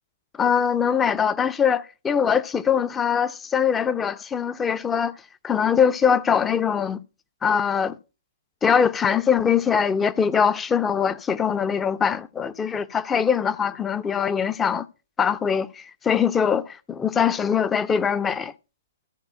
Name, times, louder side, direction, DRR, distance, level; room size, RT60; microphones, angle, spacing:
voice 1, 0.4-5.1 5.4-7.0 7.4-8.0 8.6-14.9 15.2-18.5, left 7 dB, 10° left, 0.5 m, -22 dB
14.0 x 4.7 x 5.6 m
figure-of-eight pair, 120°, 0 cm